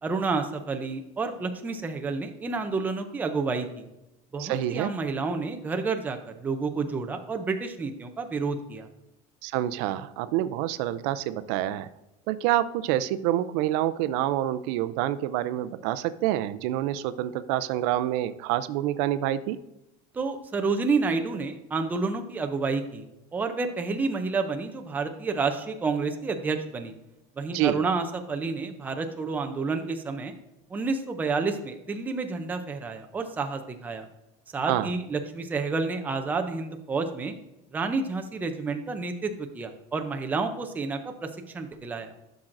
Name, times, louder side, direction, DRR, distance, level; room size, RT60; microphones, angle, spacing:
voice 1, 0.0-3.8 4.3-8.9 20.1-23.0 23.3-26.9 27.4-30.3 30.7-34.1 34.5-37.3 37.7-41.3 41.5-42.1, right 4 dB, 10° right, 6 dB, 0.5 m, -29 dB
voice 2, 4.4-4.9 9.4-11.9 12.3-19.6 27.5-27.8 34.6-34.9, right 13 dB, 75° right, 13 dB, 0.4 m, -27 dB
11.5 x 5.9 x 2.5 m, 0.93 s
cardioid pair, 175°, 16 cm